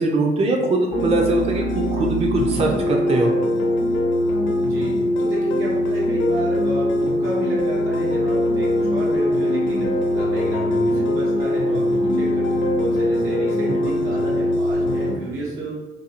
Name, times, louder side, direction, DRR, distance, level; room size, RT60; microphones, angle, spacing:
voice 1, 0.0-3.3 10.6-10.7 13.8-13.9, right 2 dB, 30° right, 0 dB, 0.4 m, -21 dB
sound 1, 0.9-15.2, left 1 dB, 70° left, 0.6 m, -21 dB
voice 2, 4.6-15.7, right 2 dB, 85° right, -5 dB, 1.1 m, -32 dB
2.7 x 2.6 x 2.8 m, 1.1 s
cardioid pair, 90°, 20 cm